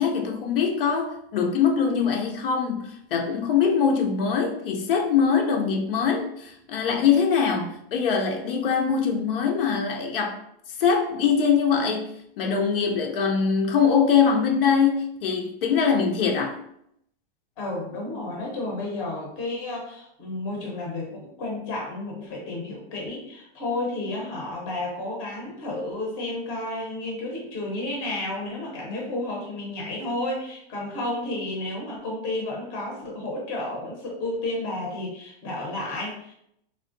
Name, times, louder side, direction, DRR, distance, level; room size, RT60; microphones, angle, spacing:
voice 1, 0.0-10.4 10.8-16.6, left 6 dB, 70° left, 0.5 m, -23 dB
voice 2, 17.6-36.3, left 2 dB, 20° left, 0.6 m, -32 dB
3.4 x 2.1 x 2.5 m
supercardioid pair, 175°, 30 cm